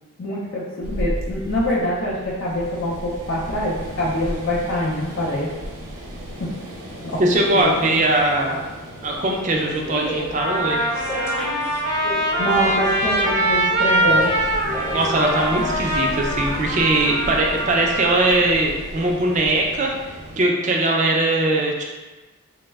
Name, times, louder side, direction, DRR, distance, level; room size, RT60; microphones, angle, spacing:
voice 1, 0.2-5.5 6.4-6.5 7.0-7.2 7.5-7.7 12.4-14.3, equal, 60° left, -7 dB, 0.5 m, -24 dB
sound 1, 0.8-20.4, equal, 85° right, 0.7 m, -35 dB
voice 2, 7.2-8.6 9.0-10.9 14.9-19.9 20.4-21.8, right 2 dB, 35° right, 0 dB, 0.4 m, -20 dB
sound 2, 9.0-16.7, equal, 10° left, 0.7 m, -32 dB
Trumpet, 10.4-18.3, right 1 dB, 90° left, 0.9 m, -23 dB
3.0 x 2.0 x 3.4 m, 1.2 s
head